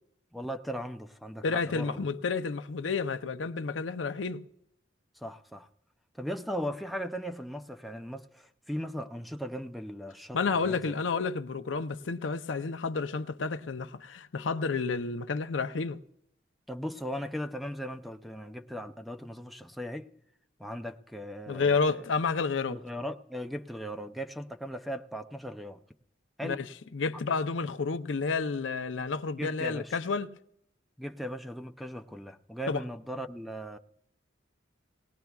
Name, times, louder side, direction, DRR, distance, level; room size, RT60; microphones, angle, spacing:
voice 1, 0.3-2.1 5.2-5.7 6.2-10.9 16.7-20.1 20.6-22.1 22.7-25.8 26.4-26.6 29.4-29.9 31.0-33.8, equal, ahead, 0.5 m, -38 dB
voice 2, 1.4-4.4 10.3-16.0 21.5-22.8 26.4-26.7 26.9-30.3 32.7-32.8, left 4 dB, 90° left, 0.6 m, -30 dB
19.0 x 19.0 x 2.3 m
head